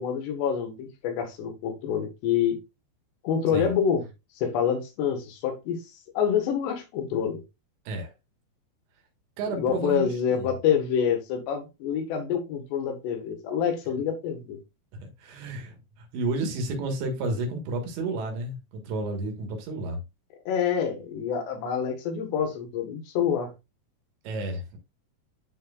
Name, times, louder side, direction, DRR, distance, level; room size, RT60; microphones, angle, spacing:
voice 1, 0.0-2.6 3.2-4.0 4.4-5.8 6.1-7.4 9.6-14.6 20.5-23.5, left 8 dB, 75° left, 3.4 m, -27 dB
voice 2, 9.4-10.6 15.0-20.0 24.3-24.8, right 2 dB, 80° right, 3.6 m, -31 dB
10.5 x 4.4 x 2.3 m
omnidirectional pair, 5.2 m